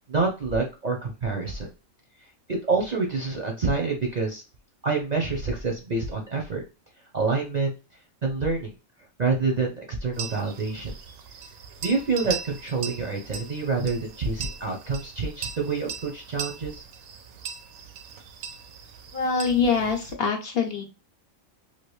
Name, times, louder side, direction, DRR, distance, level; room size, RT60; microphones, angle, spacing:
voice 1, 0.1-1.7 2.5-4.4 4.8-6.6 7.1-7.7 8.2-8.7 9.2-10.9 11.8-16.8, right 4 dB, 45° right, 1 dB, 0.6 m, -27 dB
sound 1, 10.1-20.1, right 7 dB, 85° right, 1.0 m, -39 dB
voice 2, 19.1-20.8, left 5 dB, 55° left, 3 dB, 0.7 m, -24 dB
3.2 x 2.6 x 3.0 m, 0.29 s
omnidirectional pair, 1.4 m